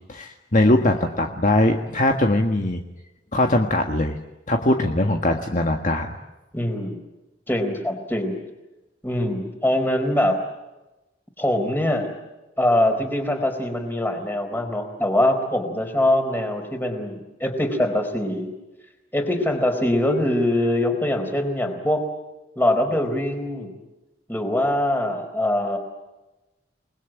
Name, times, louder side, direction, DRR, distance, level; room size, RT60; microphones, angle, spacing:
voice 1, 0.1-2.8 3.3-4.2 4.5-6.1, left 1 dB, 45° left, 3 dB, 1.6 m, -21 dB
voice 2, 6.5-7.0 7.5-8.4 9.0-10.4 11.4-12.1 12.6-18.5 19.1-22.0 22.6-23.7 24.3-25.8, left 1 dB, 10° left, 5 dB, 4.4 m, -23 dB
29.0 x 20.5 x 9.2 m, 1.0 s
head